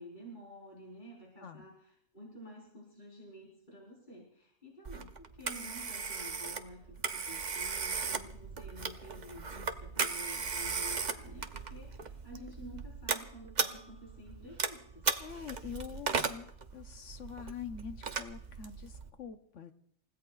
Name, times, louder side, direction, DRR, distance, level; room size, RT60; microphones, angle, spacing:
voice 1, 0.0-15.1, equal, 35° left, -4 dB, 4.5 m, -50 dB
Telephone, 4.9-19.1, right 5 dB, 40° right, 0.8 m, -37 dB
voice 2, 15.2-19.7, left 7 dB, 65° left, 8 dB, 1.2 m, -45 dB
29.0 x 16.0 x 2.4 m, 0.68 s
omnidirectional pair, 1.4 m